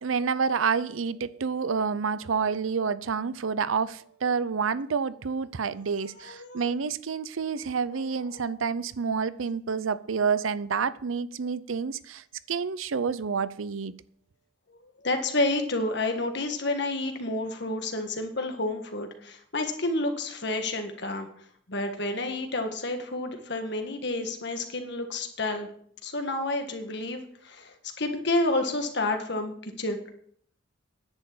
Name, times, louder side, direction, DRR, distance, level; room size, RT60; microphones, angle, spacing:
voice 1, 0.0-13.9, right 5 dB, 90° right, 0.6 m, -28 dB
voice 2, 6.2-6.6 7.9-8.6 14.7-25.7 26.0-30.0, left 2 dB, 60° left, 1.8 m, -30 dB
10.5 x 6.7 x 8.4 m
head